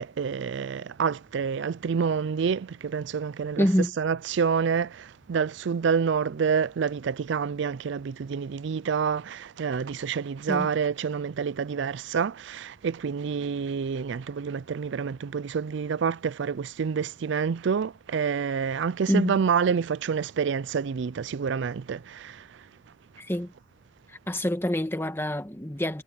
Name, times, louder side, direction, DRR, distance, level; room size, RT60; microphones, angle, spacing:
voice 1, 0.0-3.7 4.0-22.6, right 6 dB, 65° right, 0.4 m, -28 dB
voice 2, 3.6-3.9 10.5-10.7 19.1-19.4 23.2-23.5 24.1-26.0, equal, 10° left, 1.5 m, -26 dB
head